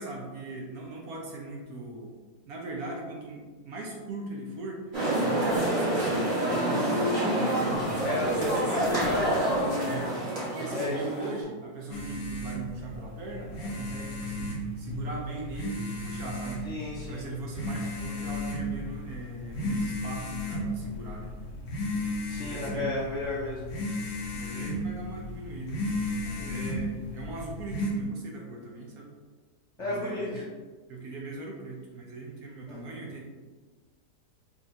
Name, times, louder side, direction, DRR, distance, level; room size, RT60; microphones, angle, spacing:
voice 1, 0.0-2.1 2.5-4.8 5.2-8.1 8.4-8.8 9.8-10.2 10.6-16.7 17.0-21.3 22.4-22.9 24.3-25.8 26.2-29.1 29.8-30.5 30.9-33.2, right 3 dB, 65° right, -1 dB, 1.1 m, -40 dB
sound 1, 4.9-11.4, right 1 dB, 30° right, 1.3 m, -27 dB
voice 2, 8.0-9.4 10.7-11.3 16.7-17.3 22.3-23.7 26.4-26.7 29.8-30.4 32.7-32.8, left 2 dB, 60° left, -5 dB, 0.8 m, -33 dB
sound 2, 11.9-27.9, left 1 dB, 85° left, 1.6 m, -34 dB
5.2 x 2.5 x 2.7 m, 1.4 s
omnidirectional pair, 1.8 m